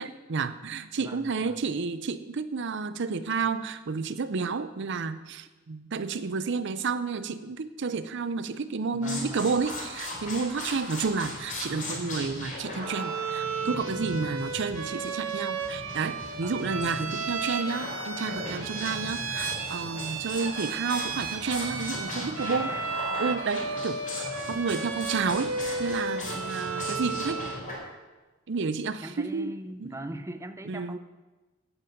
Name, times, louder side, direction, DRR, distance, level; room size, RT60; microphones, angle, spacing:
voice 1, 0.0-22.8 23.2-24.0 24.5-25.5 25.8-27.4 28.5-29.5 29.8-29.9 30.7-31.0, right 4 dB, 60° right, 13 dB, 0.5 m, -31 dB
voice 2, 1.0-1.6 9.0-9.5 16.4-16.5 22.5-22.8 24.4-24.6 26.2-26.5 29.0-31.0, right 1 dB, 15° right, 8 dB, 0.6 m, -41 dB
sound 1, 9.0-27.7, left 1 dB, 40° left, 4.0 m, -38 dB
Bowed string instrument, 12.8-27.7, right 4 dB, 85° right, 1.3 m, -34 dB
9.1 x 8.0 x 9.1 m, 1.2 s
head